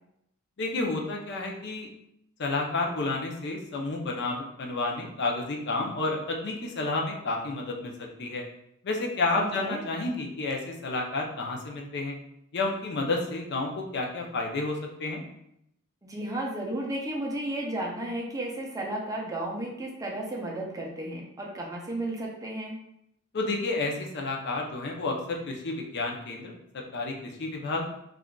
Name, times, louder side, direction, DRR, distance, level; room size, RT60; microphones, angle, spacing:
voice 1, 0.6-1.9 2.4-8.4 8.8-12.2 12.5-15.2 23.3-27.9, left 3 dB, 55° left, 1 dB, 0.5 m, -30 dB
voice 2, 9.4-9.8 16.0-22.8, right 1 dB, 15° right, -2 dB, 0.5 m, -33 dB
3.7 x 2.4 x 2.2 m, 0.77 s
head